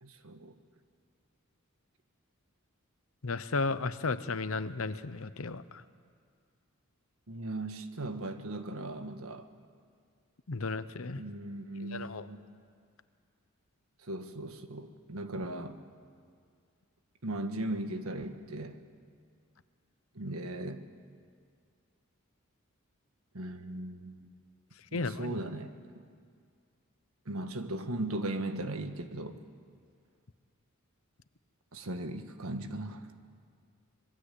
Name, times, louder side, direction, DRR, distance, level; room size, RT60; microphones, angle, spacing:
voice 1, 0.0-0.5 7.3-9.5 11.2-12.4 14.0-15.8 17.2-18.8 20.2-20.8 23.3-24.3 24.9-26.0 27.3-29.4 31.7-33.1, right 1 dB, 80° right, 8 dB, 1.6 m, -38 dB
voice 2, 3.2-5.8 10.5-11.2 11.8-12.3 24.9-25.4, left 3 dB, 70° left, 13 dB, 0.9 m, -34 dB
26.0 x 21.0 x 8.5 m, 2.2 s
head